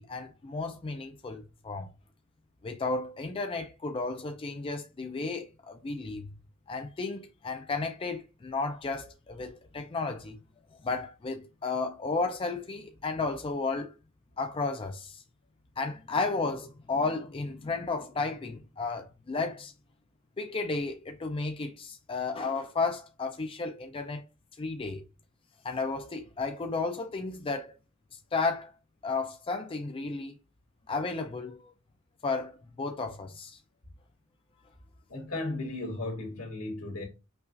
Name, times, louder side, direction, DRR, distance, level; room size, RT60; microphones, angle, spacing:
voice 1, 0.0-1.9 2.6-6.3 6.7-10.3 10.8-13.9 14.4-15.2 15.8-19.7 20.4-24.2 24.6-25.0 25.6-27.7 28.1-28.7 29.0-30.4 30.9-31.7 32.2-33.6, left 3 dB, 25° left, 0.4 m, -33 dB
voice 2, 35.1-37.0, left 2 dB, 80° left, 1.8 m, -35 dB
5.5 x 2.4 x 2.5 m
head